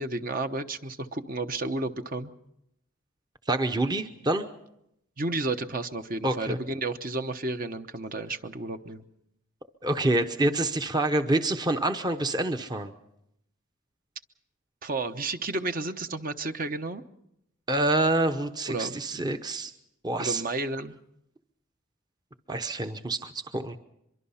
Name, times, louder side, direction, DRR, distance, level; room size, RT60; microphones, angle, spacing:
voice 1, 0.0-2.3 5.2-9.0 14.8-17.0 18.7-19.3 20.2-20.9, right 2 dB, 45° right, 8 dB, 1.0 m, -32 dB
voice 2, 3.5-4.4 6.2-6.6 9.8-12.9 17.7-19.7 20.0-20.4 22.5-23.8, right 2 dB, 20° right, 7 dB, 0.8 m, -27 dB
24.0 x 23.0 x 5.7 m, 0.80 s
head